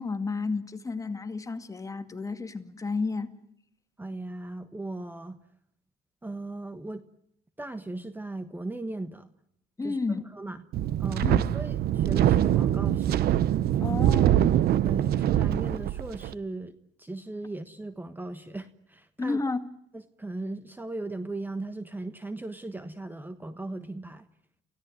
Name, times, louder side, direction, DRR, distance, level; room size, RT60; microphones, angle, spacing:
voice 1, 0.0-3.3 9.8-10.2 11.2-11.4 13.8-14.6 19.2-19.7, left 3 dB, 20° left, 2.2 m, -31 dB
voice 2, 4.0-5.4 6.2-7.0 7.6-9.3 9.8-10.0 10.3-10.6 11.0-13.3 13.8-14.2 14.8-19.4 20.2-24.3, right 2 dB, 10° right, 1.3 m, -37 dB
Wind, 10.7-16.3, right 11 dB, 65° right, 0.9 m, -24 dB
29.0 x 17.0 x 9.4 m
cardioid pair, 110°, 17 cm